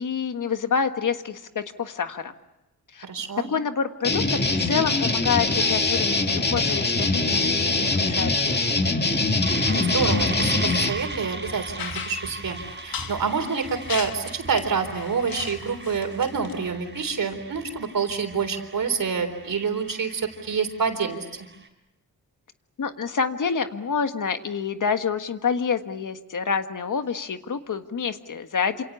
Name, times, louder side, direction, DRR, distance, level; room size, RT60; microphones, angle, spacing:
voice 1, 0.0-2.3 2.9-3.1 3.5-9.0 22.8-28.8, left 6 dB, 60° left, 8 dB, 1.6 m, -28 dB
voice 2, 3.0-3.5 9.7-12.6 12.8-21.5, right 5 dB, 65° right, 8 dB, 3.8 m, -27 dB
sound 1, 4.0-10.9, left 3 dB, 30° left, 2.3 m, -23 dB
sound 2, 9.4-21.7, right 3 dB, 30° right, 4.7 m, -38 dB
sound 3, 11.8-16.5, left 7 dB, 75° left, 1.6 m, -38 dB
28.0 x 27.5 x 7.1 m, 0.96 s
wide cardioid pair, 115°, 35 cm